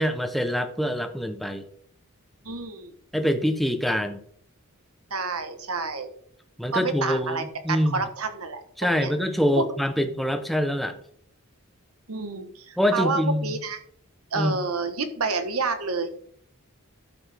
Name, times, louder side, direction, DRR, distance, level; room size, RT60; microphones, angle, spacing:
voice 1, 0.0-1.7 3.1-4.2 6.6-8.0 8.8-11.0 12.8-13.5 14.3-14.6, equal, ahead, 7 dB, 0.8 m, -25 dB
voice 2, 2.4-2.9 5.1-6.1 6.7-8.6 9.0-9.1 12.1-13.8 14.3-16.1, right 4 dB, 75° right, 9 dB, 1.2 m, -29 dB
12.5 x 7.0 x 3.5 m, 0.62 s
head